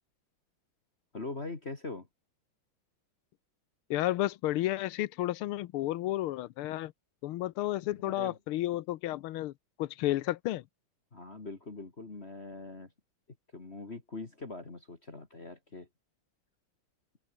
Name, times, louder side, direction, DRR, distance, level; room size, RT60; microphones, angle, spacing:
voice 1, 1.1-2.1 8.0-8.4 11.1-12.9 13.5-15.9, left 3 dB, 30° left, 2.5 m, -42 dB
voice 2, 3.9-6.9 7.2-9.5 9.8-10.6, left 15 dB, 90° left, 1.6 m, -32 dB
open air
omnidirectional pair, 2.4 m